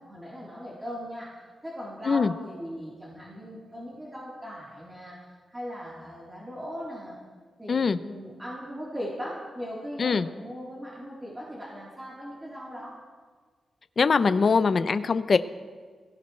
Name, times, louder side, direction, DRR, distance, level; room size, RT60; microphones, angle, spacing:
voice 1, 0.0-7.2 7.6-13.0, equal, 15° right, -7 dB, 3.6 m, -39 dB
voice 2, 7.7-8.0 10.0-10.3 14.0-15.4, left 5 dB, 45° left, 12 dB, 0.6 m, -22 dB
21.5 x 17.5 x 3.2 m, 1.5 s
wide cardioid pair, 110°, 0 cm